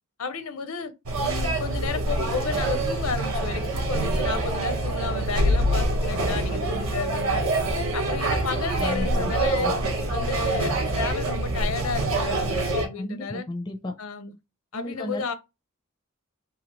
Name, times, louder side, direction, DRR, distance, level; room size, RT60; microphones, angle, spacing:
voice 1, 0.2-0.9 1.2-7.5 7.9-9.7 10.1-13.5 14.0-14.3 14.7-15.3, left 4 dB, 80° left, 0.6 m, -32 dB
sound 1, 1.1-12.9, right 1 dB, 75° right, 0.7 m, -25 dB
voice 2, 8.8-9.3 9.6-9.7 13.0-13.9 14.7-15.3, left 1 dB, 20° left, 0.4 m, -33 dB
2.9 x 2.3 x 2.9 m
head